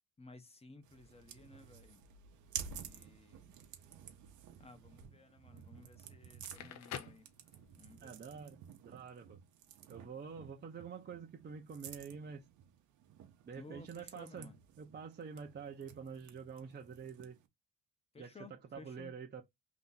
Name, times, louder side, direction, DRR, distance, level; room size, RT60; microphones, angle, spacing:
voice 1, 0.2-2.0 2.7-3.5 4.6-7.3 7.8-8.1 13.6-14.6 18.1-19.1, left 3 dB, 20° left, 0.8 m, -56 dB
sound 1, 0.8-17.5, right 8 dB, 80° right, 0.8 m, -52 dB
Crackle, 6.2-8.0, left 9 dB, 65° left, 0.6 m, -47 dB
voice 2, 8.0-8.6 8.8-9.4 9.9-12.5 13.5-14.5 14.8-17.4 18.2-19.4, right 6 dB, 35° right, 0.7 m, -47 dB
2.8 x 2.5 x 3.9 m
cardioid pair, 90°, 30 cm